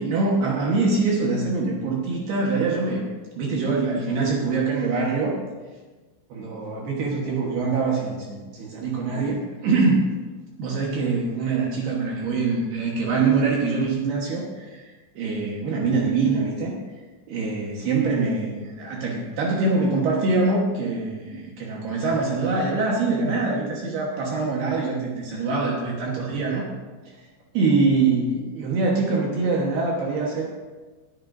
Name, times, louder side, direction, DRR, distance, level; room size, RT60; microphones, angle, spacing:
voice 1, 0.0-3.0 3.4-5.4 6.3-10.1 10.6-16.7 17.3-26.7 27.1-27.2 27.5-30.5, right 3 dB, 65° right, -2 dB, 3.0 m, -24 dB
20.0 x 11.0 x 2.7 m, 1.3 s
omnidirectional pair, 5.6 m